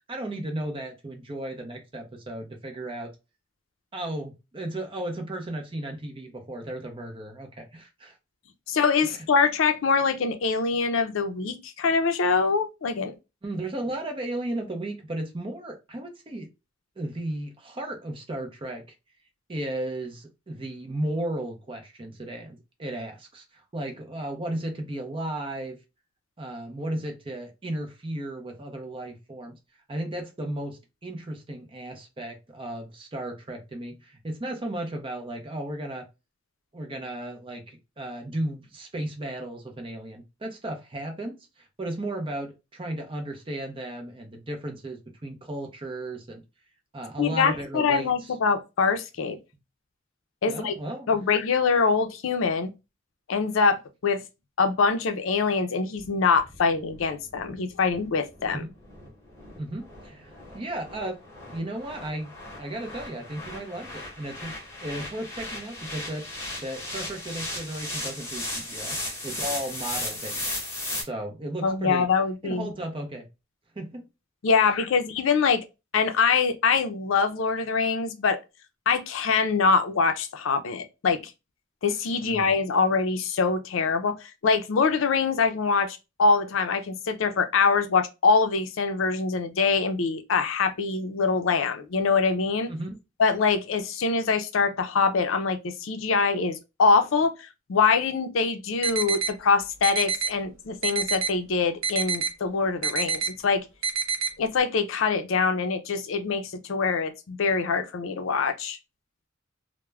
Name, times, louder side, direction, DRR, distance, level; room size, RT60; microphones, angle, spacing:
voice 1, 0.1-3.1 3.9-8.1 9.0-9.2 13.4-16.5 17.0-18.8 19.5-25.8 26.4-29.6 29.9-36.1 36.7-41.4 41.8-46.4 46.9-48.3 50.5-51.1 58.5-58.7 59.6-64.5 64.8-66.3 66.6-69.0 69.2-70.5 71.0-72.0 72.4-73.3 73.8-74.1 82.2-82.5 92.7-93.0, right 1 dB, 25° right, 0.5 m, -35 dB
voice 2, 8.7-13.1 47.2-49.4 50.4-50.7 51.1-52.7 53.3-54.2 54.6-58.6 71.6-72.7 74.4-75.6 75.9-78.4 78.9-81.2 81.8-92.7 93.2-103.6 104.4-108.8, left 5 dB, 75° left, 0.4 m, -24 dB
sound 1, 56.0-71.0, left 1 dB, 15° left, 0.9 m, -36 dB
sound 2, 98.8-99.3 99.8-100.3 100.8-101.3 101.8-102.3 102.8-103.3 103.8-104.3, right 6 dB, 80° right, 0.5 m, -26 dB
2.3 x 2.1 x 3.1 m
head